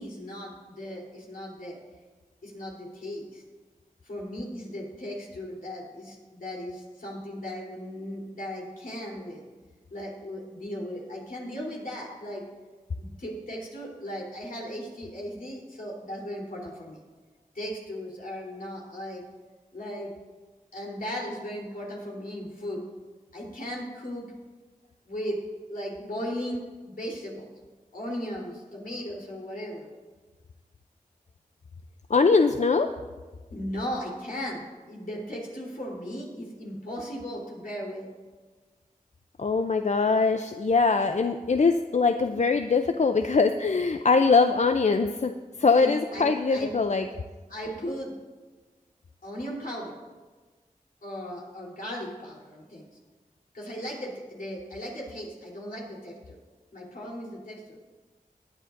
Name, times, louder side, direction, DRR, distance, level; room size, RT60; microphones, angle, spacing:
voice 1, 0.0-1.8 2.4-3.4 4.0-9.4 9.9-12.4 13.0-17.0 17.5-19.2 19.7-20.1 20.7-22.8 23.3-24.2 25.1-25.4 25.7-27.5 27.9-29.9 33.5-38.1 45.7-46.9 47.5-48.1 49.2-50.0 51.0-52.9 53.5-56.4 56.7-57.8, equal, 75° left, -3 dB, 3.5 m, -37 dB
voice 2, 32.1-32.9 39.4-45.3 45.6-47.1, left 4 dB, 50° left, 7 dB, 0.5 m, -22 dB
19.0 x 10.0 x 2.6 m, 1.3 s
wide cardioid pair, 60°, 15 cm